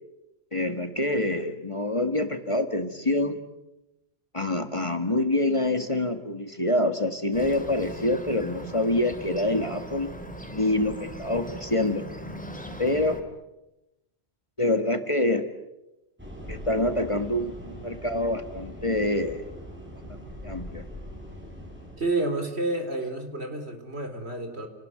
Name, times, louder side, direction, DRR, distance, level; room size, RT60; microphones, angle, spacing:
voice 1, 0.5-3.4 4.3-10.2 10.5-12.0 12.8-13.2 14.6-15.4 16.5-19.4 20.1-20.8, left 1 dB, 30° left, 8 dB, 1.9 m, -26 dB
Bird, 7.3-13.2, right 1 dB, 5° left, 2.7 m, -39 dB
sound 1, 16.2-22.0, equal, 10° right, 8.0 m, -41 dB
voice 2, 22.0-24.7, right 2 dB, 70° right, 6 dB, 4.4 m, -29 dB
30.0 x 19.0 x 9.4 m, 0.95 s
omnidirectional pair, 1.1 m